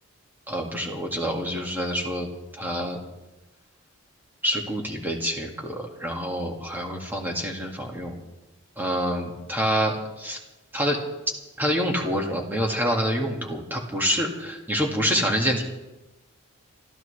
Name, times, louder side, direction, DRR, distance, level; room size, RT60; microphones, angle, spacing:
voice 1, 0.5-2.3 2.6-3.0 4.4-8.1 8.8-10.4 10.7-11.0 11.6-15.6, equal, 10° right, 0 dB, 2.1 m, -27 dB
26.0 x 13.5 x 3.4 m, 1.0 s
head